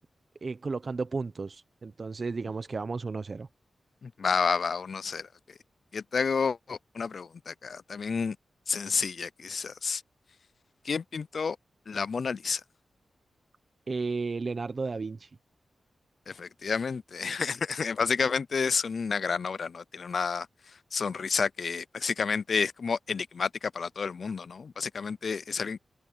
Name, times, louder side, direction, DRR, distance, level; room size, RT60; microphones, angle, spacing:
voice 1, 0.4-3.5 13.9-15.3, right 4 dB, 55° right, 1.0 m, -33 dB
voice 2, 4.0-5.3 5.9-8.4 8.7-10.0 10.8-11.6 11.9-12.6 16.3-20.5 20.9-25.8, left 5 dB, 65° left, 0.5 m, -30 dB
open air
cardioid pair, 50°, 0 cm